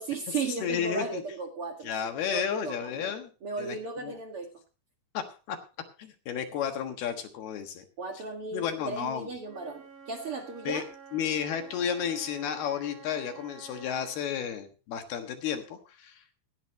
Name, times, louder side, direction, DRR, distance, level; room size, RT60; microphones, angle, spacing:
voice 1, 0.0-1.9 2.2-3.1 3.4-4.5 8.0-10.8, right 4 dB, 85° right, 3 dB, 1.2 m, -35 dB
voice 2, 0.6-1.2 1.8-3.3 3.6-3.8 4.0-4.2 5.1-5.6 6.0-7.8 8.5-9.3 10.6-10.8 11.1-16.4, left 8 dB, 65° left, 6 dB, 2.9 m, -32 dB
Wind instrument woodwind instrument, 9.4-14.2, right 5 dB, 45° right, 7.4 m, -49 dB
17.0 x 12.0 x 3.2 m, 0.33 s
omnidirectional pair, 5.9 m